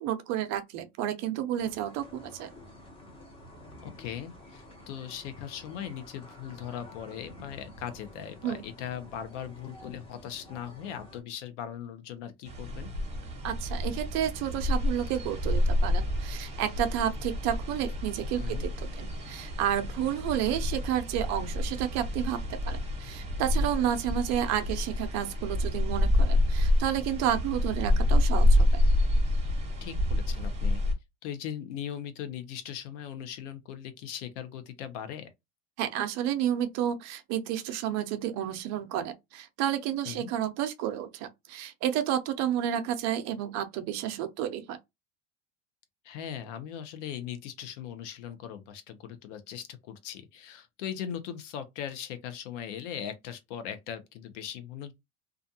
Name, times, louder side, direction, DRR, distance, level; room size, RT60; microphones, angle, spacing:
voice 1, 0.0-2.5 8.4-8.6 13.4-22.4 22.6-28.7 35.8-44.8, right 10 dB, 45° right, 0.6 m, -31 dB
sound 1, 1.6-11.2, left 1 dB, 15° left, 0.8 m, -50 dB
voice 2, 3.8-12.9 18.4-18.7 29.8-30.8 31.2-35.3 40.1-40.3 46.0-54.9, left 9 dB, 75° left, 0.7 m, -39 dB
sound 2, 12.5-30.9, left 1 dB, 20° right, 0.9 m, -28 dB
2.4 x 2.3 x 2.6 m
supercardioid pair, 130°, 36 cm